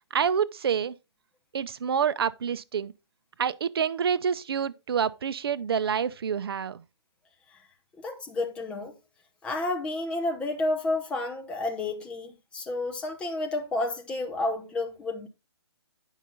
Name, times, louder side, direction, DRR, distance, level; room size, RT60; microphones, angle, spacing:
voice 1, 0.1-1.0 1.5-2.9 3.4-6.8, right 7 dB, 55° right, 0.6 m, -27 dB
voice 2, 7.9-8.9 9.4-15.3, left 2 dB, 5° left, 0.8 m, -30 dB
9.1 x 5.6 x 3.9 m
hypercardioid pair, 160°, 15 cm